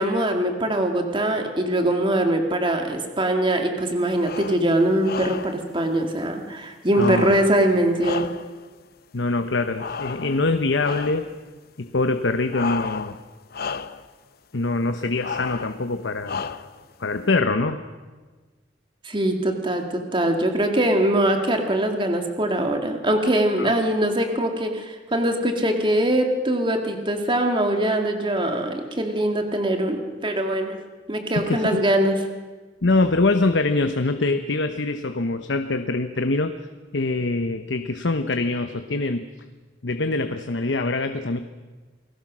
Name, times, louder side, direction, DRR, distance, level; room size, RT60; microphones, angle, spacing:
voice 1, 0.0-8.3 19.0-30.8 31.1-32.2, right 1 dB, 30° right, 4 dB, 2.1 m, -22 dB
sound 1, 4.1-4.7 5.0-5.7 6.9-8.7 9.8-10.5 10.8-11.3 12.5-13.3 13.5-14.1 15.2-15.8 16.2-16.8, left 5 dB, 55° left, 0.8 m, -32 dB
voice 2, 7.0-7.3 9.1-11.3 11.8-13.2 14.5-16.4 17.0-17.8 23.6-23.7 31.4-31.8 32.8-36.6 36.9-39.3 39.8-41.4, left 3 dB, 85° left, 8 dB, 1.0 m, -24 dB
29.0 x 19.5 x 6.2 m, 1.3 s
head